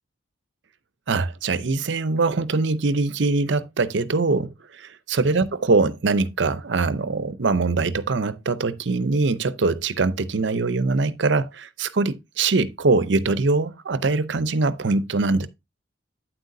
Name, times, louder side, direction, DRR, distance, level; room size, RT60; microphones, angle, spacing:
voice 1, 1.1-15.5, right 3 dB, 65° right, 0.6 m, -23 dB
8.9 x 7.8 x 2.6 m
head